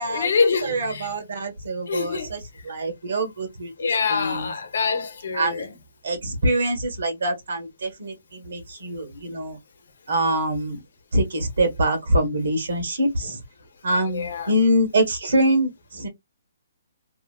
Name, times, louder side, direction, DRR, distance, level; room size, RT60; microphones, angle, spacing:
voice 1, 0.1-1.1 1.9-2.3 3.8-5.7 14.1-14.5, left 5 dB, 65° left, 0.9 m, -25 dB
voice 2, 0.6-3.7 4.1-4.5 5.3-5.7 6.0-9.6 10.1-10.8 11.1-13.4 13.8-16.1, right 1 dB, 65° right, 1.2 m, -24 dB
2.8 x 2.4 x 2.3 m
hypercardioid pair, 175°, 0 cm